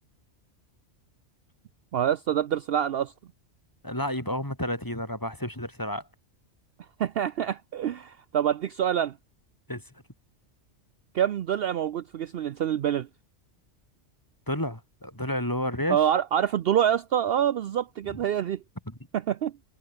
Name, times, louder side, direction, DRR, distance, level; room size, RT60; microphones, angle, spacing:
voice 1, 1.9-3.1 7.0-9.1 11.1-13.1 15.9-18.6 19.1-19.5, right 9 dB, 60° right, 0.8 m, -26 dB
voice 2, 3.8-6.1 9.7-9.8 14.5-16.1 18.1-18.2 18.9-19.0, left 1 dB, 15° left, 4.1 m, -31 dB
omnidirectional pair, 1.2 m